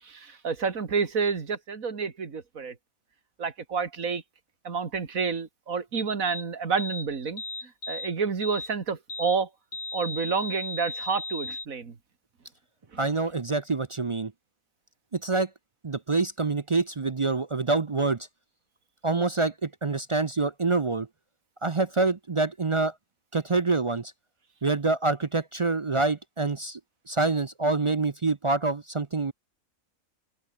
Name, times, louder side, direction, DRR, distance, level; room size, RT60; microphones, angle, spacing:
voice 1, 0.0-2.8 3.4-4.2 4.6-7.4 7.9-9.5 9.9-11.9, right 5 dB, 85° right, 2.5 m, -29 dB
sound 1, 6.2-6.4 6.8-7.1 7.4-8.1 8.4-8.7 9.1-9.4 9.7-11.7, left 2 dB, 55° left, 4.3 m, -36 dB
voice 2, 13.0-14.3 15.1-15.5 15.8-18.2 19.0-21.1 21.6-22.9 23.3-24.1 24.6-26.8 27.1-29.3, right 3 dB, 35° right, 0.5 m, -26 dB
omnidirectional pair, 1.4 m